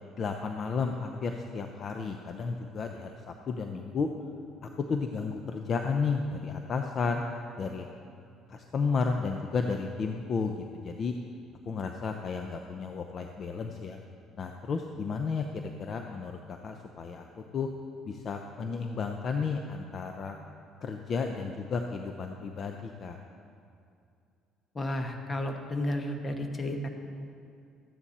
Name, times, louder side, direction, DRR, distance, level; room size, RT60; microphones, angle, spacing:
voice 1, 0.1-4.1 4.6-7.2 7.6-7.9 8.5-11.1 11.7-14.0 14.4-17.7 18.0-20.4 20.8-23.2, left 5 dB, 40° left, 4 dB, 0.6 m, -33 dB
voice 2, 24.7-26.9, left 1 dB, 20° left, 4 dB, 1.1 m, -32 dB
13.5 x 9.9 x 4.2 m, 2.5 s
cardioid pair, 125°, 0 cm